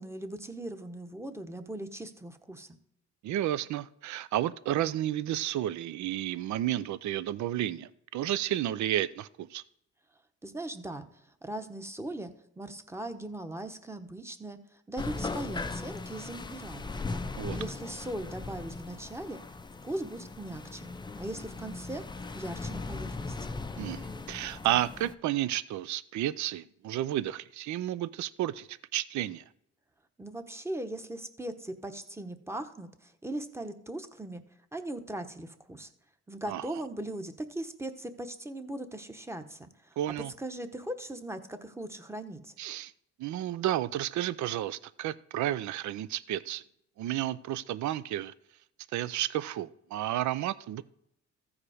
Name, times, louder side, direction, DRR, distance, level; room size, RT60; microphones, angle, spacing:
voice 1, 0.0-2.7 10.4-11.1 11.4-17.0 17.5-19.4 19.8-20.9 21.2-22.0 22.3-23.6 30.2-34.4 34.7-35.9 36.3-40.0 40.4-42.5, right 1 dB, 10° right, 8 dB, 0.9 m, -39 dB
voice 2, 3.2-9.6 17.4-17.6 23.8-29.4 36.5-36.7 40.0-40.3 42.6-42.9 43.2-46.6 47.0-48.3 48.9-50.8, right 13 dB, 70° right, 17 dB, 0.5 m, -32 dB
sound 1, 15.0-25.1, left 3 dB, 15° left, 0.4 m, -39 dB
14.5 x 4.9 x 4.9 m, 0.76 s
cardioid pair, 90°, 30 cm